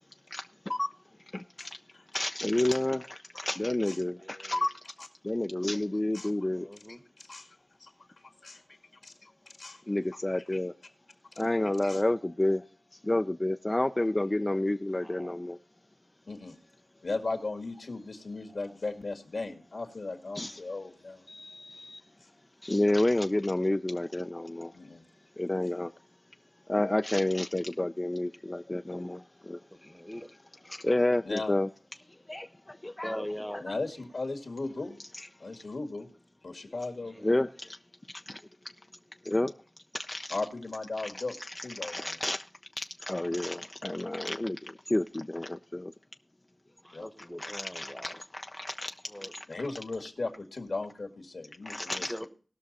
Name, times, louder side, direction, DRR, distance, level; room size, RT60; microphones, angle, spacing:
voice 1, 0.3-0.9 1.3-1.7 2.1-4.7 5.2-6.7 9.9-10.7 11.4-12.6 13.0-15.6 20.3-20.6 21.3-22.0 22.6-24.7 25.4-25.9 26.7-29.6 30.7-31.7 32.3-33.2 33.5-33.8 37.2-37.8 38.3-38.4 39.2-39.5 40.0-40.4 41.0-41.1 41.4-42.4 42.8-45.9 47.4-48.9 49.3-49.4 51.7-52.1, left 1 dB, 25° left, 0.5 m, -30 dB
voice 2, 4.2-4.7 6.5-7.0 15.0-15.4 29.7-30.3 32.8-33.6 37.0-37.4 46.8-48.2 49.1-49.3 52.0-52.3, equal, 5° left, 1.0 m, -41 dB
voice 3, 6.9-7.9 8.4-8.6 9.0-9.3 9.6-9.8 11.3-11.4 11.8-12.0 16.3-16.6 17.0-21.3 24.7-25.1 31.2-31.5 33.6-35.0 35.4-36.1 36.4-37.1 40.3-41.4 41.6-42.2 46.9-47.1 49.5-52.3, left 3 dB, 70° left, 2.0 m, -37 dB
19.0 x 6.3 x 4.1 m
wide cardioid pair, 75°, 0 cm